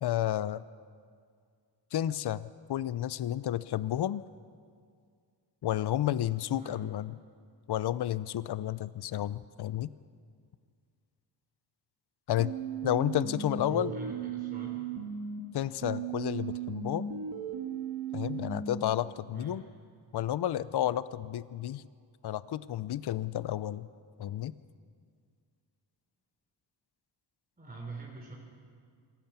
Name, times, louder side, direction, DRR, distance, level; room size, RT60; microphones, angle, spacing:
voice 1, 0.0-0.6 1.9-4.2 5.6-7.1 7.7-9.9 12.3-12.5 12.8-13.9 15.5-17.1 18.1-19.6 20.1-21.9 22.2-23.9 24.2-24.5, left 12 dB, 65° left, 17 dB, 0.6 m, -31 dB
voice 2, 6.5-6.8 13.7-14.8 19.3-19.6 27.6-28.3, right 4 dB, 20° right, -3 dB, 3.4 m, -43 dB
sound 1, 12.4-15.4 15.8-18.8, right 7 dB, 75° right, 2.1 m, -37 dB
26.5 x 15.0 x 6.9 m, 2.1 s
wide cardioid pair, 115°, 43 cm